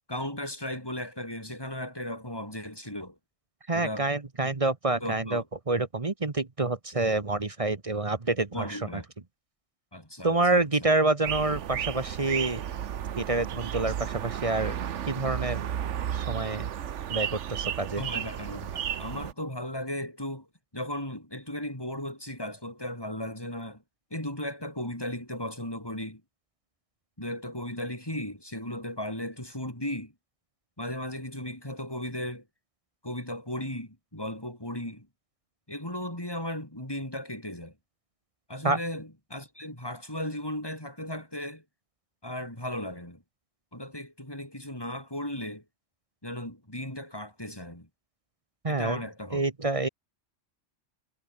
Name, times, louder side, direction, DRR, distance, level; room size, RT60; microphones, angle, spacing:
voice 1, 0.1-3.2 3.7-4.1 4.4-4.5 5.0-5.5 8.5-9.1 9.9-10.9 18.0-20.5 20.7-23.8 24.1-26.2 27.2-30.1 30.8-32.4 33.0-35.1 35.7-37.7 38.5-41.6 42.2-43.2 43.7-45.6 46.2-47.9 48.7-49.4, left 1 dB, 20° left, 6.4 m, -36 dB
voice 2, 3.7-8.9 10.2-12.6 13.2-14.8 15.1-15.6 16.1-16.7 17.1-18.0 38.6-38.8 48.6-49.0 49.3-49.9, right 2 dB, 30° right, 1.2 m, -27 dB
sound 1, 11.2-19.3, right 9 dB, 75° right, 1.2 m, -33 dB
omnidirectional pair, 1.2 m